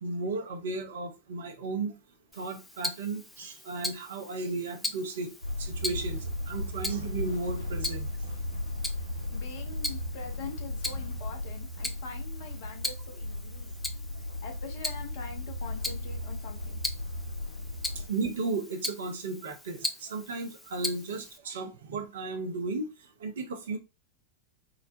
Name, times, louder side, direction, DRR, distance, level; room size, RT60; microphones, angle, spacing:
voice 1, 0.0-2.0 2.4-5.3 5.6-8.1 18.1-22.9 23.2-23.8, right 3 dB, 60° right, 0.7 m, -34 dB
Tick-tock, 2.3-21.4, left 2 dB, 5° left, 0.4 m, -40 dB
sound 1, 5.4-18.1, left 1 dB, 85° left, 1.9 m, -36 dB
voice 2, 9.3-13.8 14.4-16.8, left 5 dB, 50° left, 0.7 m, -44 dB
3.9 x 2.2 x 2.6 m
figure-of-eight pair, 90°, 0 cm